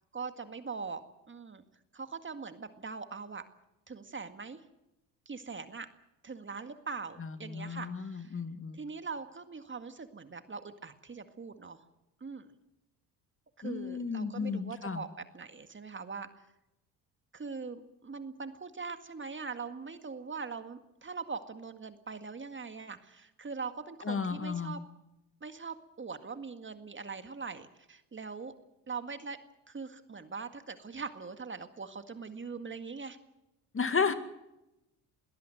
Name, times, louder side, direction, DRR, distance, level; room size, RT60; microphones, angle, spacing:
voice 1, 0.1-1.6 1.9-3.5 3.9-4.6 5.3-5.9 6.2-8.4 8.7-11.8 12.2-12.5 13.6-15.1 15.3-16.5 17.3-24.8 25.4-28.5 28.9-29.4 29.7-33.2, right 5 dB, 25° right, 9 dB, 1.9 m, -42 dB
voice 2, 7.2-8.8 13.6-15.0 24.0-24.7 33.7-34.1, left 5 dB, 30° left, 10 dB, 2.2 m, -33 dB
21.5 x 18.0 x 7.9 m, 0.91 s
hypercardioid pair, 60°, 43 cm